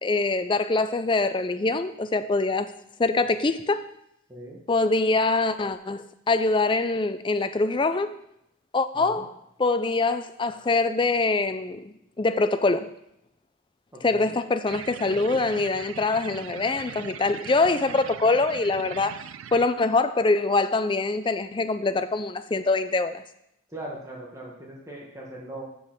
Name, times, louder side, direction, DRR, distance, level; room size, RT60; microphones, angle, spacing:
voice 1, 0.0-2.7 3.0-3.8 4.7-8.2 8.7-12.9 14.0-19.2 19.5-23.2, left 3 dB, 25° left, 0.4 m, -24 dB
voice 2, 13.9-14.3 23.7-25.6, right 1 dB, 15° right, 1.3 m, -40 dB
sound 1, 14.7-19.7, right 9 dB, 80° right, 0.4 m, -41 dB
6.5 x 5.3 x 5.9 m
head